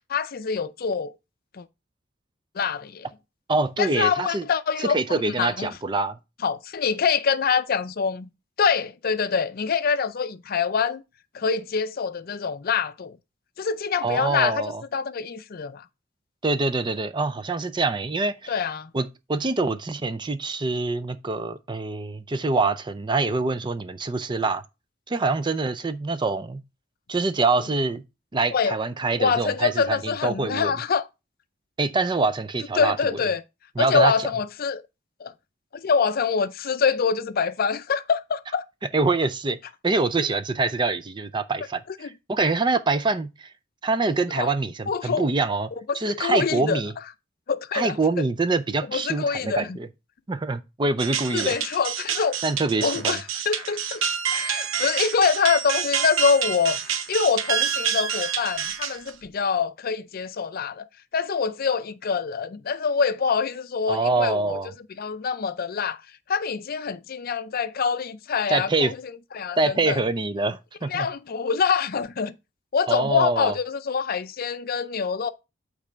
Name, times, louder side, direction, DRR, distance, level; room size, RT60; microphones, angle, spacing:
voice 1, 0.1-1.1 1.5-1.6 2.5-3.1 3.8-5.0 5.4-5.7 6.4-8.3 8.6-11.0 11.3-13.2 13.6-15.8 18.5-18.9 28.5-28.8 29.2-31.0 32.8-33.4 33.8-34.8 35.2-35.3 35.7-38.6 44.4-44.5 44.9-45.3 45.9-46.8 47.5-48.0 48.9-49.8 51.3-52.3 52.8-54.0 54.3-60.9 61.1-64.6 65.0-66.0 66.3-69.0 69.3-70.0 70.9-72.3 72.7-75.3, left 6 dB, 50° left, 0.5 m, -25 dB
voice 2, 3.5-4.5 4.8-6.2 14.0-14.8 16.4-18.5 18.9-24.6 25.1-26.6 27.1-28.0 28.3-30.7 31.8-33.2 33.8-34.3 38.9-39.6 39.8-43.5 43.8-46.9 47.7-49.9 50.3-51.5 52.4-53.2 63.9-64.7 68.5-68.9 69.6-71.1 72.9-73.5, right 3 dB, 25° right, 0.5 m, -25 dB
sound 1, 51.0-59.3, right 8 dB, 90° right, 0.8 m, -28 dB
8.6 x 3.3 x 5.0 m
head